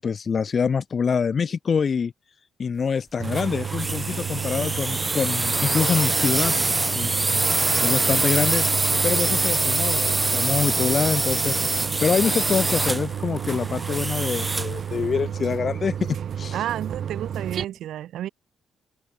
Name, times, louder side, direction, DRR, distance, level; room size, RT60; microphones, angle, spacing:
voice 1, 0.0-2.1 2.6-6.6 6.9-7.2 7.8-8.6 9.0-11.6 12.0-16.6, left 6 dB, 45° left, 1.1 m, -25 dB
sound 1, 3.2-14.8, right 2 dB, 20° right, 0.4 m, -24 dB
sound 2, 3.2-17.6, right 8 dB, 60° right, 4.2 m, -31 dB
voice 2, 16.5-18.3, right 12 dB, 80° right, 2.5 m, -31 dB
cardioid pair, 80°, 0 cm